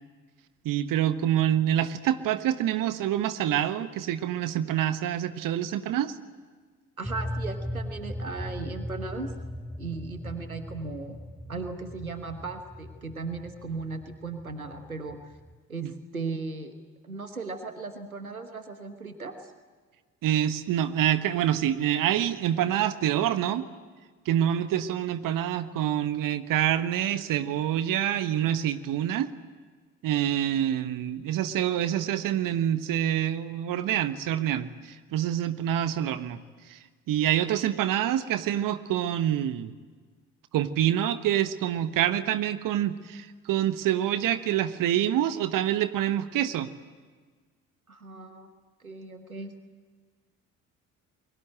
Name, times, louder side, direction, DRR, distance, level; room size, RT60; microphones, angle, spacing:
voice 1, 0.6-6.1 15.8-15.9 20.2-23.6 24.2-29.3 30.0-36.4 36.7-36.8 37.1-39.7 40.5-46.7, right 11 dB, 50° right, 12 dB, 1.4 m, -26 dB
sound 1, 7.0-15.6, equal, 5° right, 4.8 m, -38 dB
voice 2, 7.0-9.3 9.8-11.2 11.5-15.2 15.7-16.7 17.0-19.5 47.9-48.5 48.8-49.5, right 3 dB, 90° right, 8 dB, 1.3 m, -37 dB
29.0 x 22.5 x 7.8 m, 1.5 s
figure-of-eight pair, 45°, 41 cm